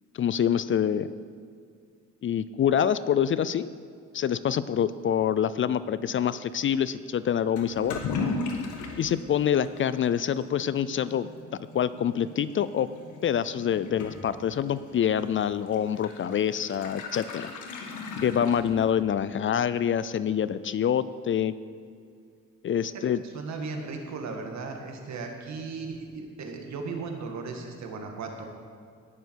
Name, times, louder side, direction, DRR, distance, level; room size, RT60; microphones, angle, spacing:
voice 1, 0.1-1.1 2.2-3.7 4.1-8.0 9.0-11.3 11.7-12.9 13.2-17.5 18.2-21.5 22.6-23.2, left 9 dB, 40° left, 15 dB, 0.4 m, -26 dB
Toilet flush / Liquid, 7.6-19.2, left 4 dB, 80° left, 1.6 m, -38 dB
voice 2, 23.3-28.5, right 4 dB, 65° right, 3 dB, 1.8 m, -36 dB
18.0 x 7.0 x 4.6 m, 2.2 s
cardioid pair, 90°, 30 cm